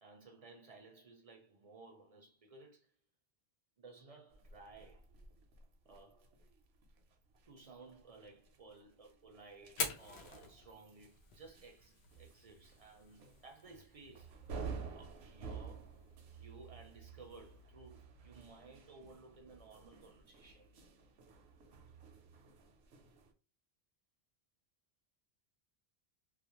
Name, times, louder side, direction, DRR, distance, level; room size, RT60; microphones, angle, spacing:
voice 1, 0.0-2.9 3.8-5.1 5.9-6.3 7.5-14.4 14.9-16.0 16.3-20.7, right 3 dB, 45° right, 0.5 m, -57 dB
sound 1, 4.3-23.3, right 5 dB, 80° right, 0.8 m, -52 dB
Fire, 9.6-17.6, left 5 dB, 90° left, 0.9 m, -48 dB
2.4 x 2.1 x 2.8 m
omnidirectional pair, 1.1 m